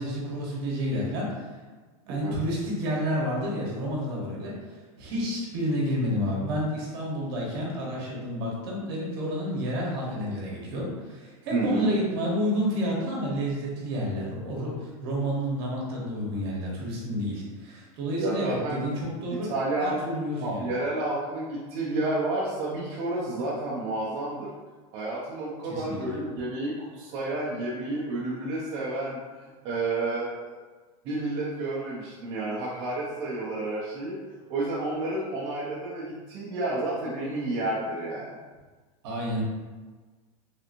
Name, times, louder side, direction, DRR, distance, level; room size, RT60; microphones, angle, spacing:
voice 1, 0.0-1.4 2.1-4.6 5.0-19.5 19.8-20.8 25.7-26.1 39.0-39.4, equal, 45° right, -3 dB, 0.9 m, -30 dB
voice 2, 11.5-11.9 18.2-18.8 19.5-20.0 20.4-24.5 24.9-30.5 31.0-34.2 34.5-38.3, right 2 dB, 25° right, -7 dB, 0.3 m, -30 dB
3.3 x 2.8 x 2.5 m, 1.3 s
supercardioid pair, 180°, 18 cm